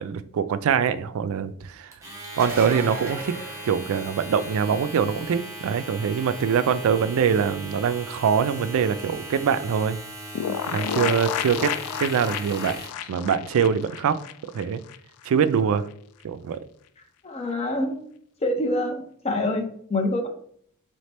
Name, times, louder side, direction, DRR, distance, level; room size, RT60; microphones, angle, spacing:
voice 1, 0.0-1.9 2.3-3.3 3.6-10.0 10.7-11.7 12.0-12.8 13.1-14.2 14.5-14.8 15.3-15.9 16.2-16.6, right 7 dB, 65° right, 14 dB, 0.3 m, -23 dB
Domestic sounds home sounds, 1.9-13.0, right 1 dB, 15° right, 0.9 m, -39 dB
sound 1, 2.2-4.5 10.0-10.1 11.9-12.0, right 2 dB, 40° right, 1.0 m, -36 dB
sound 2, 10.4-15.0 15.2-15.3 15.6-15.7, left 9 dB, 80° left, 0.3 m, -31 dB
voice 2, 17.2-18.0 18.4-20.3, left 1 dB, 30° left, 3 dB, 0.7 m, -26 dB
4.1 x 3.2 x 3.3 m, 0.63 s
head